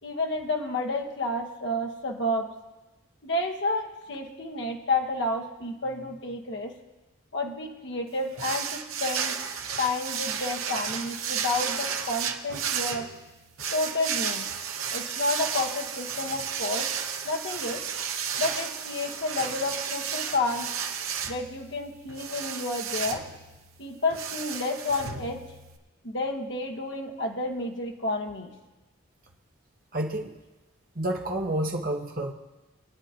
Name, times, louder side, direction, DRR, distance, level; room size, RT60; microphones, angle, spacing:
voice 1, 0.0-2.5 3.2-6.7 7.3-9.4 9.8-13.1 13.7-14.5 14.9-16.9 17.2-17.8 18.4-20.7 21.3-23.2 23.8-25.4 26.0-28.5, left 2 dB, 60° left, 2 dB, 1.4 m, -30 dB
sound 1, 8.4-25.8, right 7 dB, 85° right, 0.9 m, -33 dB
voice 2, 29.9-30.3 30.9-32.3, right 1 dB, 45° right, 1 dB, 1.3 m, -29 dB
25.0 x 9.2 x 2.9 m, 1.1 s
head